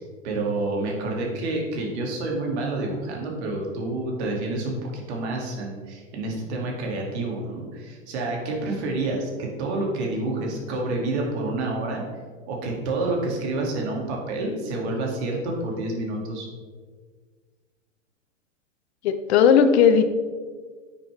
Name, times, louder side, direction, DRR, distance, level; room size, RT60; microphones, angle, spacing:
voice 1, 0.0-12.0 12.5-16.5, right 2 dB, 55° right, 0 dB, 2.4 m, -28 dB
voice 2, 19.0-20.0, left 7 dB, 55° left, 9 dB, 0.8 m, -16 dB
9.3 x 6.8 x 3.4 m, 1.5 s
hypercardioid pair, 115°, 39 cm